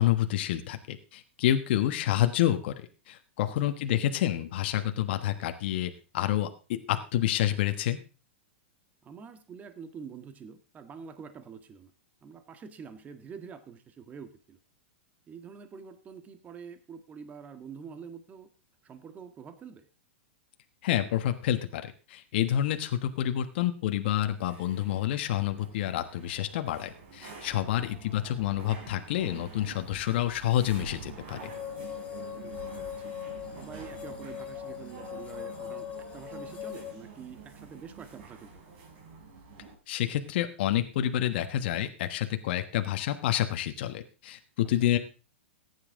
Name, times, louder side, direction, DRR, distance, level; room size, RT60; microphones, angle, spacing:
voice 1, 0.0-8.0 20.8-31.5 39.9-45.0, left 12 dB, 60° left, 7 dB, 1.3 m, -28 dB
voice 2, 9.0-11.9 12.2-14.6 15.3-18.5 18.8-19.9 27.8-27.9 32.3-33.1 33.5-35.9 36.1-38.6 44.8-44.9, right 6 dB, 25° right, 9 dB, 1.6 m, -46 dB
sound 1, 24.0-39.8, right 4 dB, 60° right, 4.6 m, -47 dB
sound 2, 31.4-36.9, left 11 dB, 20° left, 2.2 m, -40 dB
15.0 x 9.8 x 3.7 m, 0.34 s
hypercardioid pair, 115°, 6 cm